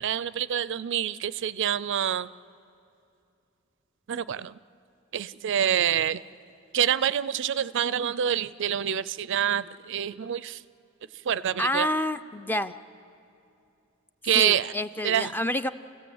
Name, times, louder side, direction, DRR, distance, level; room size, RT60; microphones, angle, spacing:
voice 1, 0.0-2.3 4.1-4.5 5.1-6.2 6.7-10.6 11.2-11.9 14.2-14.7 15.0-15.3, right 9 dB, 60° right, 17 dB, 0.4 m, -26 dB
voice 2, 11.6-12.7 14.3-15.7, left 1 dB, 10° left, 11 dB, 0.5 m, -28 dB
29.5 x 15.5 x 7.9 m, 2.6 s
head